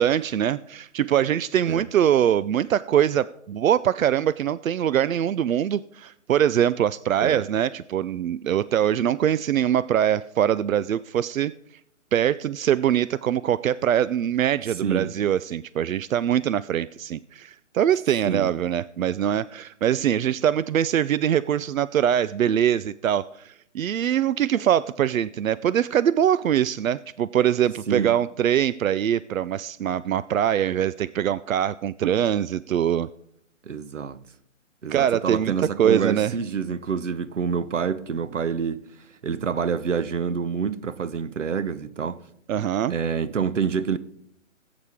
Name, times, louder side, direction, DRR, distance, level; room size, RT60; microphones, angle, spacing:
voice 1, 0.0-11.5 12.1-33.1 34.9-36.3 42.5-42.9, right 10 dB, 90° right, 0.5 m, -23 dB
voice 2, 14.8-15.1 18.2-18.5 27.9-28.1 33.6-34.2 34.8-38.8 39.2-42.2 42.9-44.0, right 6 dB, 65° right, 0.9 m, -27 dB
18.0 x 8.6 x 3.6 m
hypercardioid pair, 175°, 39 cm